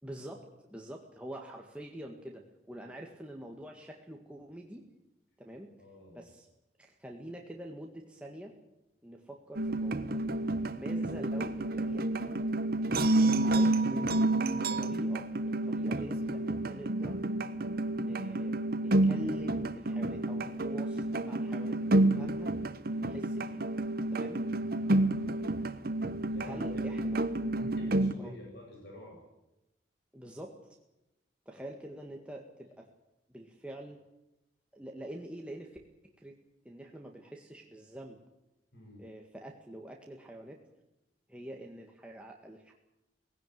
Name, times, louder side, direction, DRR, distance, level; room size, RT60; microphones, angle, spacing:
voice 1, 0.0-4.8 5.4-5.7 6.1-6.5 6.8-8.5 9.0-10.2 10.7-12.4 13.4-14.1 14.8-15.3 15.7-17.4 17.9-22.5 23.0-23.7 24.1-24.4 26.4-27.2 28.2-28.3 30.1-30.8 31.5-32.9 33.3-34.0 34.7-35.8 36.0-36.4 36.7-38.2 39.0-40.6 41.3-42.7, right 1 dB, 5° right, 0 dB, 1.9 m, -45 dB
voice 2, 5.8-6.2 24.8-25.1 26.2-26.7 27.6-29.2 38.7-39.0, left 1 dB, 65° left, -1 dB, 8.0 m, -47 dB
sound 1, 9.6-28.1, right 2 dB, 60° right, 1.2 m, -30 dB
19.0 x 17.0 x 9.5 m, 0.92 s
head